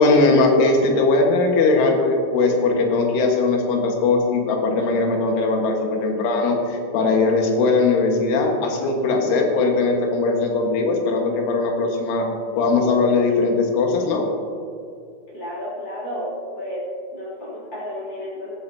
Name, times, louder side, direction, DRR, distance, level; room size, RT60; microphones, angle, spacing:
voice 1, 0.0-12.3 12.6-14.3, left 3 dB, 85° left, 1 dB, 4.0 m, -19 dB
voice 2, 15.3-16.8 17.1-18.6, left 1 dB, 30° left, -7 dB, 3.2 m, -32 dB
16.0 x 12.5 x 2.8 m, 2.4 s
omnidirectional pair, 5.3 m